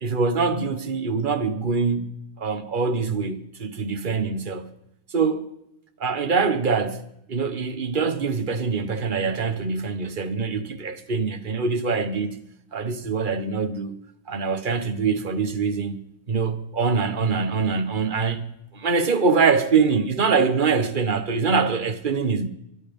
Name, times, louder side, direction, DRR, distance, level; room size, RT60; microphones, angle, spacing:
voice 1, 0.0-4.7 5.1-5.5 6.0-12.4 12.7-13.9 14.3-16.0 16.3-22.5, right 5 dB, 40° right, 1.1 m, -24 dB
24.0 x 11.5 x 5.3 m
omnidirectional pair, 1.5 m